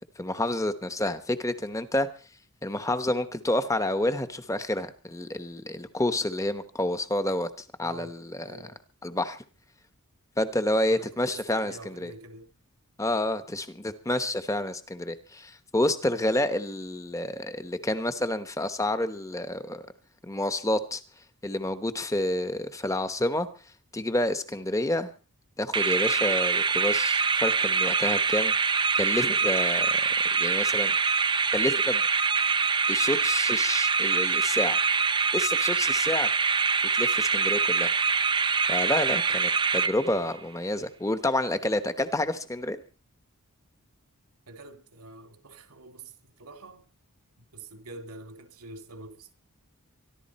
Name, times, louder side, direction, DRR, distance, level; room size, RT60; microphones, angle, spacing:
voice 1, 0.2-2.1 2.6-7.5 7.8-8.6 9.0-9.4 10.4-11.7 12.0-12.1 13.0-19.9 20.2-21.0 21.4-23.5 23.9-25.1 25.6-28.5 29.0-30.0 30.4-31.0 31.5-32.0 32.9-34.8 35.3-36.3 37.0-37.9 38.7-42.8, left 1 dB, 15° left, 1.0 m, -29 dB
voice 2, 7.8-8.8 10.9-12.5 39.3-39.5 44.5-46.9 47.4-49.3, right 2 dB, 85° right, 2.3 m, -46 dB
sound 1, 25.7-40.4, right 5 dB, 20° right, 0.7 m, -24 dB
24.0 x 12.0 x 4.3 m
head